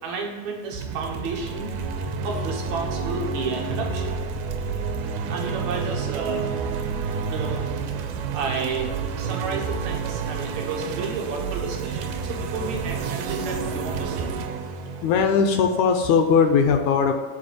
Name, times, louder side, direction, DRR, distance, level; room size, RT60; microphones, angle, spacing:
voice 1, 0.0-1.7 2.2-4.2 5.3-6.5 7.3-7.7 8.1-14.3, right 4 dB, 65° right, 1 dB, 2.2 m, -32 dB
sound 1, 0.7-16.1, right 5 dB, 85° right, 2.2 m, -29 dB
voice 2, 14.7-17.1, left 6 dB, 75° left, 5 dB, 1.9 m, -20 dB
8.8 x 4.2 x 6.8 m, 1.5 s
omnidirectional pair, 3.7 m